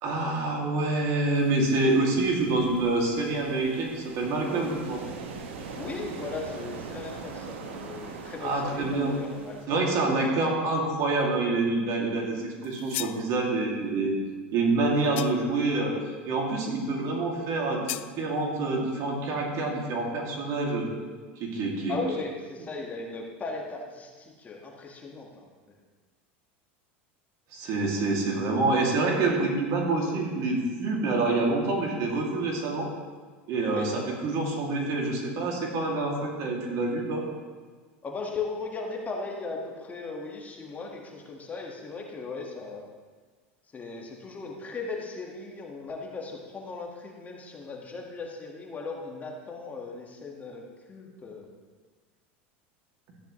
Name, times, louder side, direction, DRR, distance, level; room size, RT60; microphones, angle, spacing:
voice 1, 0.0-5.0 8.4-9.2 9.7-14.2 14.5-16.0 16.3-20.9 21.4-22.0 27.5-32.9 33.5-37.2, right 2 dB, 55° right, -1 dB, 2.7 m, -27 dB
sound 1, 1.4-9.7, right 5 dB, 80° right, 1.3 m, -42 dB
voice 2, 5.8-10.0 21.9-25.8 33.6-33.9 38.0-42.8 43.7-50.6 50.9-51.5, left 3 dB, 25° left, 0 dB, 1.9 m, -37 dB
sound 2, 12.6-13.3 15.2-15.6 17.9-18.1, left 15 dB, 80° left, 0.4 m, -36 dB
13.5 x 10.0 x 3.3 m, 1.5 s
hypercardioid pair, 105°, 6 cm